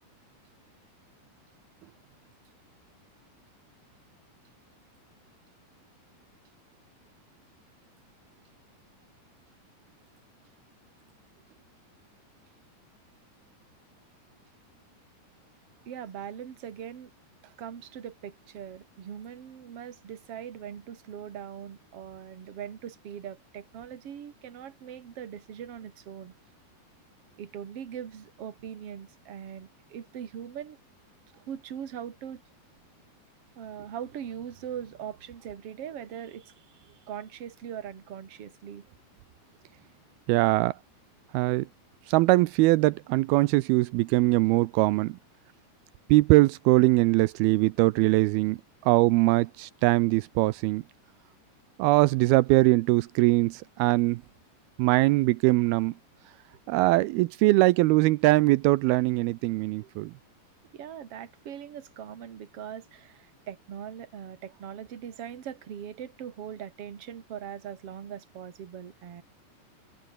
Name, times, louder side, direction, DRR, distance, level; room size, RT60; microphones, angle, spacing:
voice 1, 15.9-17.1 17.6-26.3 27.4-30.8 31.3-32.4 33.6-38.8 59.8-59.9 60.7-69.2, right 9 dB, 45° right, 2.4 m, -41 dB
voice 2, 40.3-40.8 41.3-41.7 42.1-45.2 46.1-48.6 48.8-50.8 51.8-54.2 54.8-55.9 56.7-60.1, right 20 dB, 90° right, 2.2 m, -22 dB
omnidirectional pair, 5.1 m